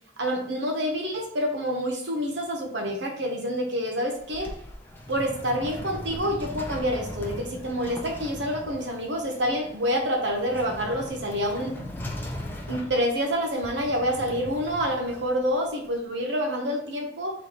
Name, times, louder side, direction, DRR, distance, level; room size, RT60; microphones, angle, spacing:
voice 1, 0.2-4.5 5.1-11.7 12.7-17.3, equal, 75° right, 2 dB, 1.1 m, -27 dB
sound 1, 4.0-15.9, left 1 dB, 10° left, 0.7 m, -39 dB
4.0 x 4.0 x 3.1 m, 0.68 s
head